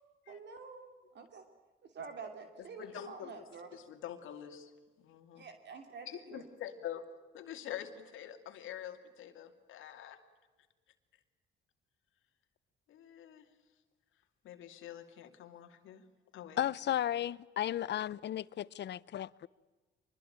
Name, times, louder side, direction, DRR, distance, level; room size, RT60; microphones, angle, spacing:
voice 1, 0.3-1.4 1.8-3.8 5.3-6.4, right 5 dB, 60° right, 2.9 m, -48 dB
voice 2, 2.8-4.7 5.0-5.5 6.0-7.0 7.3-10.2 12.9-13.5 14.4-16.0 16.3-16.7, left 10 dB, 85° left, 2.6 m, -46 dB
voice 3, 16.6-19.5, left 11 dB, 60° left, 0.7 m, -34 dB
24.0 x 21.0 x 8.9 m
cardioid pair, 90°, 20 cm